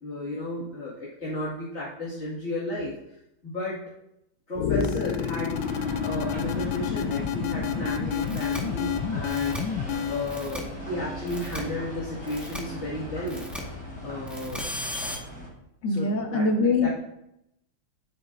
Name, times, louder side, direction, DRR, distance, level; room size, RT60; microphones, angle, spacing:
voice 1, 0.0-2.9 3.4-3.8 4.5-5.6 6.0-9.6 10.1-13.5 14.0-14.6 15.9-16.9, left 1 dB, 35° left, -9 dB, 2.1 m, -33 dB
sound 1, 4.5-10.3, left 7 dB, 85° left, 1.4 m, -29 dB
sound 2, 5.5-15.5, equal, 20° left, 4.1 m, -38 dB
sound 3, 8.3-8.6 9.3-9.6 10.3-10.6 11.3-11.6 12.3-12.6 13.3-13.6 14.3-15.2, left 1 dB, ahead, 1.0 m, -36 dB
voice 2, 15.8-16.9, left 3 dB, 65° left, 0 dB, 2.3 m, -23 dB
11.5 x 9.7 x 2.5 m, 0.83 s
omnidirectional pair, 2.1 m